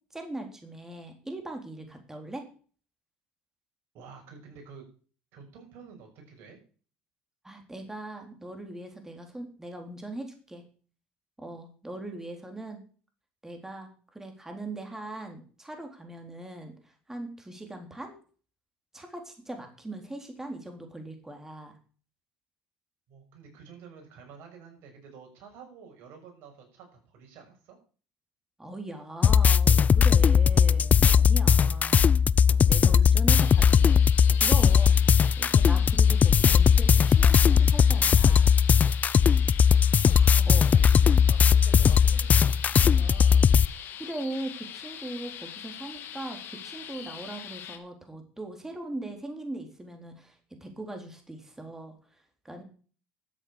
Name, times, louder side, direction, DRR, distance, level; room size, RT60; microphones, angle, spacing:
voice 1, 0.1-2.4 7.4-10.6 11.4-12.8 13.4-18.1 18.9-21.7 28.6-32.1 32.6-34.1 34.4-35.0 35.4-38.6 40.5-40.7 44.0-52.0 52.4-52.6, right 1 dB, 10° right, 4 dB, 3.7 m, -40 dB
voice 2, 3.9-4.9 5.3-6.6 23.1-27.8 32.7-33.6 40.1-43.5, right 6 dB, 65° right, 2 dB, 6.9 m, -49 dB
sound 1, 29.2-43.7, left 7 dB, 35° left, 0.5 m, -19 dB
sound 2, 33.3-47.8, left 9 dB, 55° left, 2.6 m, -42 dB
13.0 x 7.8 x 7.2 m, 0.41 s
supercardioid pair, 85°, 4 cm